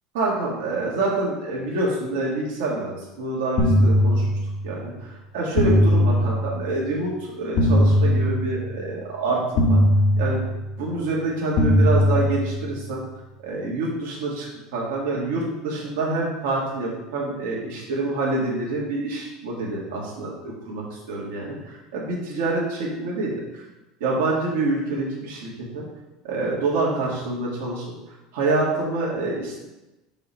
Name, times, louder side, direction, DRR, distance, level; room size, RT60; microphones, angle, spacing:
voice 1, 0.1-4.3 4.6-9.8 10.2-10.4 10.8-13.0 13.4-14.5 14.7-23.7 24.0-25.8 26.2-27.9 28.3-29.6, right 2 dB, 85° right, -4 dB, 1.8 m, -26 dB
sound 1, 3.6-4.8 5.6-6.8 7.6-8.8 9.6-10.8 11.6-12.8, left 1 dB, 40° left, 0.9 m, -19 dB
5.9 x 3.8 x 5.6 m, 1.0 s
cardioid pair, 165°, 0 cm